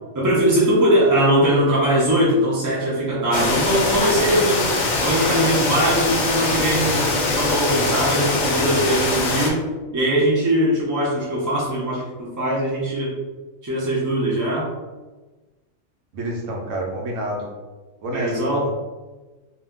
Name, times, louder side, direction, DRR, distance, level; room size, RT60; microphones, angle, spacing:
voice 1, 0.1-4.7 5.0-9.6 9.9-13.1 13.6-14.7 18.1-18.7, right 1 dB, 30° right, -7 dB, 0.3 m, -21 dB
sound 1, 3.3-9.5, left 3 dB, 70° left, 0.4 m, -22 dB
voice 2, 16.1-17.5 18.0-18.7, right 1 dB, 70° right, 0 dB, 0.9 m, -28 dB
2.7 x 2.1 x 3.5 m, 1.2 s
omnidirectional pair, 1.4 m